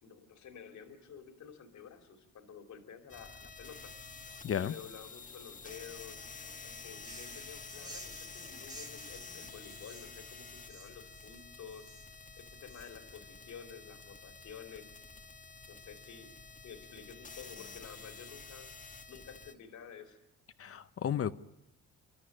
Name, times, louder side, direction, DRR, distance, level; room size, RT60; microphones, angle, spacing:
voice 1, 0.0-3.9 4.5-6.2 6.6-11.9 12.4-15.0 15.7-16.3 16.6-18.7 19.1-20.2, left 7 dB, 70° left, 2.7 m, -51 dB
sound 1, 3.1-19.5, left 4 dB, 25° left, 1.4 m, -49 dB
sound 2, 6.9-13.2, right 1 dB, 15° right, 2.0 m, -53 dB
voice 2, 20.6-21.3, left 9 dB, 50° left, 0.9 m, -33 dB
29.5 x 12.0 x 10.0 m
cardioid pair, 90°, 30 cm